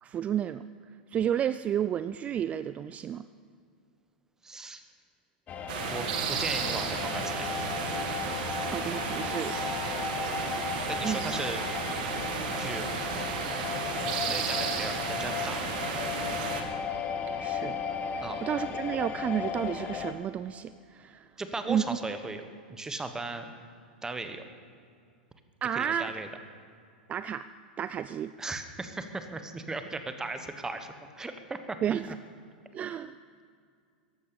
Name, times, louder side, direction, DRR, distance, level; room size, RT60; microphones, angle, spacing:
voice 1, 0.0-0.6 1.1-3.3 8.7-9.5 11.0-11.3 17.4-17.8 18.4-21.3 21.7-22.0 25.6-26.1 27.1-27.5 27.8-28.3 31.8-32.2 32.7-33.2, right 9 dB, 25° right, 13 dB, 0.4 m, -31 dB
voice 2, 4.4-4.8 5.8-7.6 10.9-11.6 12.4-12.9 14.2-15.6 18.2-18.4 21.4-22.4 22.7-23.5 24.0-24.4 25.7-26.3 28.4-31.8 32.1-32.2, right 3 dB, 10° right, 8 dB, 1.2 m, -37 dB
sound 1, 5.5-20.1, left 7 dB, 30° left, 1.3 m, -35 dB
sound 2, 5.7-16.6, right 6 dB, 65° right, 2.0 m, -33 dB
15.0 x 11.0 x 7.0 m, 2.2 s
hypercardioid pair, 105°, 5 cm